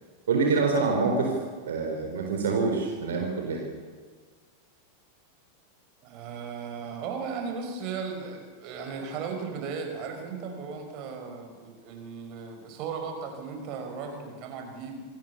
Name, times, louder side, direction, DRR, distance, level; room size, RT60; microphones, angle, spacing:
voice 1, 0.3-1.3 1.7-3.6, right 4 dB, 60° right, 2 dB, 4.1 m, -26 dB
voice 2, 6.0-15.0, right 5 dB, 40° right, 4 dB, 5.3 m, -36 dB
27.0 x 20.5 x 7.1 m, 1.5 s
figure-of-eight pair, 90°, 0 cm